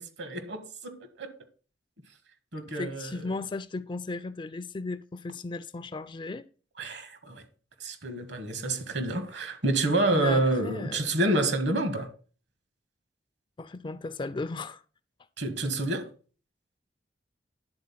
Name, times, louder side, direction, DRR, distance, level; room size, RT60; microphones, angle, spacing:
voice 1, 0.0-1.3 2.5-3.3 6.8-7.4 7.8-12.1 15.4-16.1, right 2 dB, 70° right, 1.6 m, -28 dB
voice 2, 2.7-6.5 10.1-11.2 13.6-14.8, left 3 dB, 25° left, 0.4 m, -36 dB
10.5 x 4.0 x 5.7 m
head